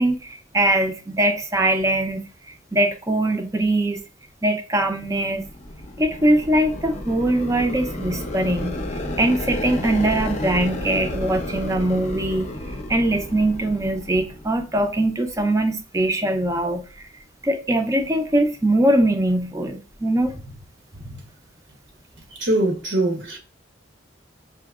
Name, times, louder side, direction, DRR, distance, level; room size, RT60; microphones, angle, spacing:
voice 1, 0.0-2.2 2.7-4.0 4.4-5.4 6.0-12.5 12.9-16.8 17.4-20.6 20.9-21.2, right 1 dB, 15° right, 0.5 m, -22 dB
sound 1, 5.1-14.9, left 1 dB, 35° left, 0.5 m, -31 dB
voice 2, 22.4-23.4, right 1 dB, 70° right, 0.8 m, -22 dB
5.9 x 2.8 x 2.3 m
head